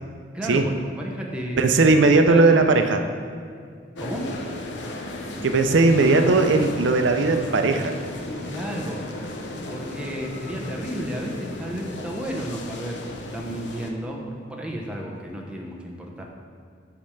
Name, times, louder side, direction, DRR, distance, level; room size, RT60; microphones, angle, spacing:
voice 1, 0.3-1.6 1.8-2.7 4.0-4.3 8.5-9.0 9.7-16.2, right 1 dB, 5° right, -2 dB, 0.9 m, -32 dB
voice 2, 1.6-3.0 5.4-7.9, right 3 dB, 80° right, 6 dB, 0.5 m, -18 dB
sound 1, 4.0-13.9, left 2 dB, 65° left, 0.7 m, -35 dB
8.6 x 3.4 x 6.5 m, 2.2 s
head